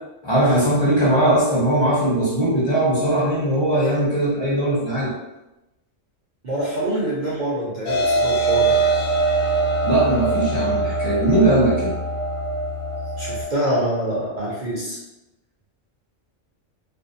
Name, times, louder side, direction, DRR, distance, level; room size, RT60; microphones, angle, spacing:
voice 1, 0.2-5.1 9.8-11.9, right 1 dB, 25° left, -8 dB, 0.7 m, -19 dB
voice 2, 6.4-8.7 13.2-15.0, right 1 dB, 50° right, -7 dB, 0.6 m, -25 dB
sound 1, 7.8-13.4, right 2 dB, 65° left, 0.9 m, -22 dB
2.6 x 2.0 x 2.6 m, 0.97 s
omnidirectional pair, 1.3 m